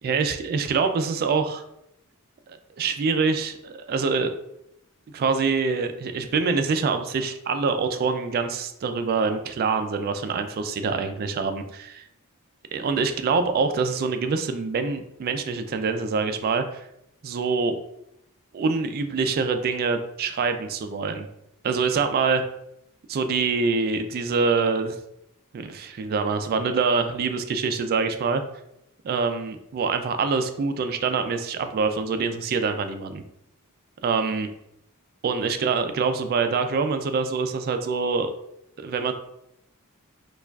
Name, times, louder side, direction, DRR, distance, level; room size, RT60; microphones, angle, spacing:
voice 1, 0.0-1.6 2.8-4.3 5.1-12.0 12.7-16.8 17.2-17.8 18.5-21.3 21.6-22.4 23.1-25.0 25.5-28.4 29.0-33.2 34.0-34.5 35.2-38.3 38.8-39.1, right 4 dB, 45° right, 8 dB, 0.3 m, -25 dB
4.4 x 2.3 x 2.3 m, 0.79 s
head